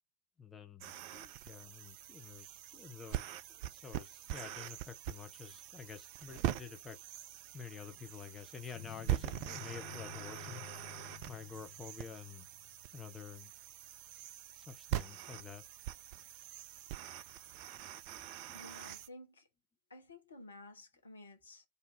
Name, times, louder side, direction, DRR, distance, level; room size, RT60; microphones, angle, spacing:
voice 1, 0.4-3.3 3.6-7.0 7.5-10.7 11.3-12.5 12.9-13.5 14.6-15.6 17.8-18.2 18.5-18.6, left 6 dB, 20° left, 0.7 m, -49 dB
sound 1, 0.8-19.1, right 13 dB, 45° right, 0.4 m, -43 dB
sound 2, 8.8-13.0, left 23 dB, 45° left, 0.4 m, -52 dB
voice 2, 18.5-19.5 19.9-21.7, left 2 dB, 75° left, 1.0 m, -53 dB
4.0 x 2.7 x 4.4 m
figure-of-eight pair, 90°, 0 cm